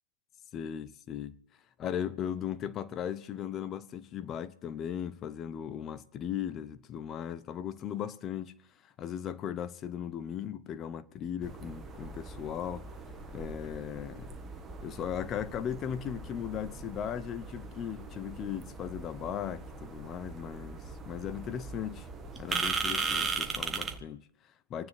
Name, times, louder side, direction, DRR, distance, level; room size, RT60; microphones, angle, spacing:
voice 1, 0.5-1.4 1.8-8.5 8.8-12.9 13.3-14.3 14.8-22.1 22.4-24.9, left 9 dB, 25° left, 0.7 m, -37 dB
sound 1, 11.4-24.0, right 4 dB, 10° right, 1.2 m, -38 dB
27.5 x 9.3 x 3.3 m
hypercardioid pair, 135°, 0 cm